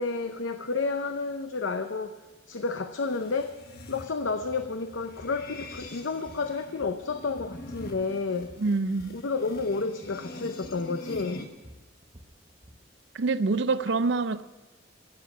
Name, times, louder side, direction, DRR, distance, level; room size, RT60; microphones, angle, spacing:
voice 1, 0.0-2.2 2.5-3.5 3.9-8.5 9.1-11.4, left 4 dB, 80° left, 8 dB, 0.7 m, -31 dB
sound 1, 3.0-11.5, left 2 dB, 50° left, 1.4 m, -44 dB
sound 2, 5.2-5.4 5.7-5.9 6.3-7.1 7.4-9.2 9.5-9.7 10.0-10.2 10.6-10.8 11.1-12.8, equal, 25° right, 1.1 m, -51 dB
voice 2, 8.6-9.2 13.1-14.4, right 3 dB, 65° right, 13 dB, 0.5 m, -26 dB
16.0 x 7.6 x 8.5 m, 1.2 s
head